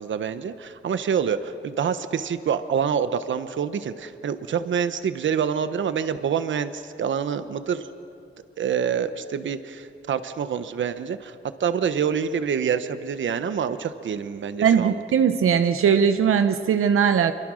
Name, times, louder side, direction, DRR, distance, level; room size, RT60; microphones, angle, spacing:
voice 1, 0.0-7.8 8.6-11.3 11.6-15.0, right 7 dB, 65° right, 11 dB, 1.1 m, -26 dB
voice 2, 14.6-17.3, right 7 dB, 90° right, 9 dB, 0.9 m, -19 dB
27.5 x 23.5 x 6.4 m, 2.6 s
wide cardioid pair, 165°, 21 cm